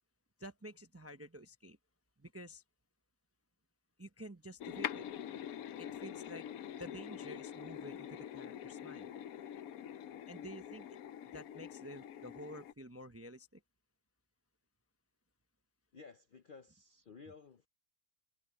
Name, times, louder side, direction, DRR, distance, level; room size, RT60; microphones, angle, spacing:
voice 1, 0.4-1.8 2.2-2.6 4.0-5.1 5.8-6.4 6.7-9.1 10.3-11.0 11.3-13.6, equal, 15° right, 0.5 m, -50 dB
sound 1, 4.6-12.7, left 10 dB, 75° left, 1.1 m, -45 dB
voice 2, 15.9-17.7, left 5 dB, 55° left, 0.6 m, -55 dB
omnidirectional pair, 1.6 m